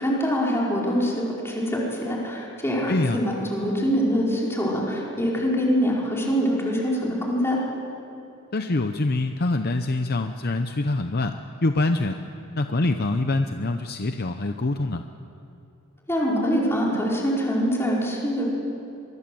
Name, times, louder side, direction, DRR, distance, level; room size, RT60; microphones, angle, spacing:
voice 1, 0.0-7.6 16.1-18.4, equal, 10° left, -4 dB, 4.8 m, -24 dB
voice 2, 2.9-3.2 8.5-12.2 12.5-15.0, left 2 dB, 45° left, 7 dB, 0.8 m, -25 dB
23.0 x 23.0 x 7.8 m, 2.8 s
head